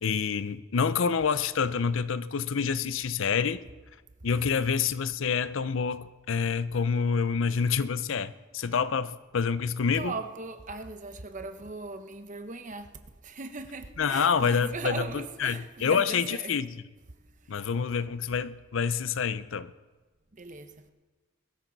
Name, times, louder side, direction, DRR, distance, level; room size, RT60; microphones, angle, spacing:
voice 1, 0.0-3.6 4.2-10.1 14.0-15.0 15.4-16.8 17.5-19.7, left 6 dB, 65° left, 0.5 m, -27 dB
voice 2, 10.0-12.9 13.2-16.6 17.5-17.6 20.3-20.9, right 3 dB, 35° right, 0.9 m, -39 dB
21.5 x 13.0 x 4.0 m
head